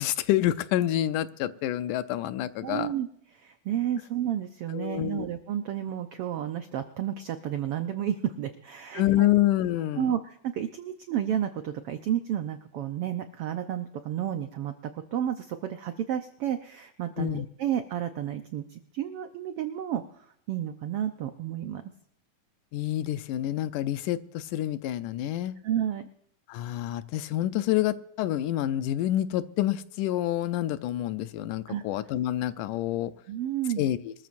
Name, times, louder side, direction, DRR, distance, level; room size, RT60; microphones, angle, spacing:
voice 1, 0.0-2.9 4.7-5.3 9.0-10.1 17.2-17.5 22.7-25.6 26.5-33.1 33.8-34.1, left 13 dB, 80° left, 12 dB, 2.2 m, -27 dB
voice 2, 2.6-3.1 3.3-9.3 10.0-20.0 20.5-21.8 25.6-26.1 31.7-31.8 33.3-33.9, right 10 dB, 80° right, 8 dB, 1.3 m, -31 dB
24.0 x 14.0 x 2.6 m, 0.69 s
omnidirectional pair, 3.6 m